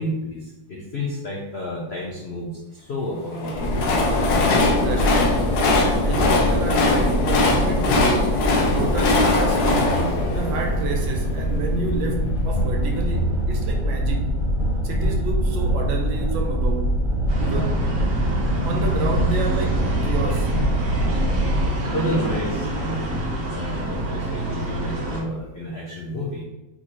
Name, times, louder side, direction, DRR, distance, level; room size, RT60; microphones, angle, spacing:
voice 1, 0.0-3.7 21.8-23.0 23.5-26.4, left 1 dB, 80° left, -2 dB, 0.5 m, -30 dB
Train, 3.3-11.4, left 3 dB, 65° left, 1.1 m, -21 dB
sound 1, 3.5-21.7, equal, ahead, 1.3 m, -24 dB
voice 2, 4.8-5.6 6.0-8.4 8.7-14.3 14.8-17.0 17.4-17.8 18.6-20.6, right 3 dB, 80° right, 2 dB, 1.5 m, -30 dB
sound 2, 17.3-25.2, right 1 dB, 50° right, 1.4 m, -27 dB
4.2 x 4.2 x 3.0 m, 0.99 s
omnidirectional pair, 2.1 m